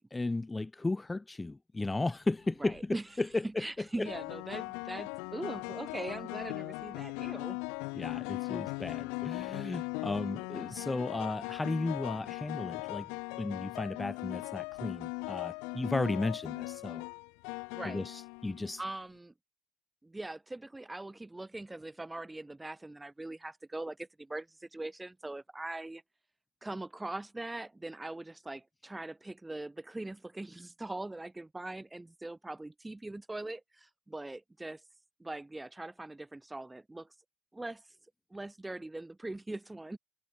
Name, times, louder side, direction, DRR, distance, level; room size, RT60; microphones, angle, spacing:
voice 1, 0.1-3.6 4.0-4.1 7.9-13.1 13.4-17.0 17.8-18.8, left 2 dB, 15° left, 6.3 m, -34 dB
sound 1, 2.5-2.8 4.1-18.9, left 35 dB, 80° left, 3.0 m, -39 dB
voice 2, 2.6-3.0 3.6-7.6 17.7-18.0 18.8-19.3 20.0-26.0 26.6-34.8 35.2-37.1 37.5-37.9 38.3-40.0, right 2 dB, 10° right, 5.4 m, -41 dB
supercardioid pair, 85°, 0 cm